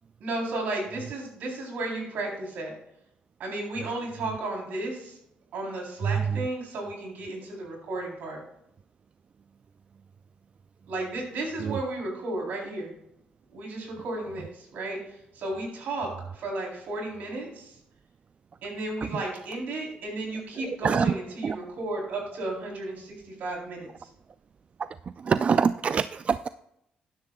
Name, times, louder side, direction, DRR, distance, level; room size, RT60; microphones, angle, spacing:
voice 1, 0.2-2.7 3.4-5.2 5.5-8.4 10.9-13.0 13.5-15.0 15.3-17.8 18.6-24.1, right 2 dB, 75° right, -1 dB, 4.0 m, -33 dB
voice 2, 20.6-21.1 21.4-21.6 25.2-26.5, right 6 dB, 40° right, 14 dB, 0.3 m, -25 dB
12.5 x 10.5 x 2.4 m, 0.79 s
supercardioid pair, 75°, 3 cm